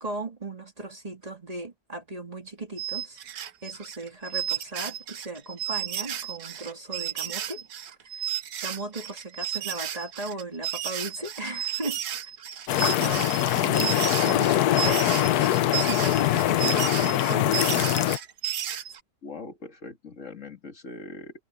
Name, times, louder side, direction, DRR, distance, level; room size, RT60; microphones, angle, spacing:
voice 1, 0.0-3.2 3.6-7.7 8.0-8.3 8.6-12.0 13.0-13.3 13.6-18.2, right 2 dB, 25° right, 2.2 m, -37 dB
sound 1, 2.8-19.0, right 11 dB, 85° right, 1.5 m, -33 dB
sound 2, 12.7-18.2, left 13 dB, 85° left, 1.2 m, -23 dB
voice 2, 19.2-21.4, left 3 dB, 55° left, 2.3 m, -41 dB
omnidirectional pair, 1.6 m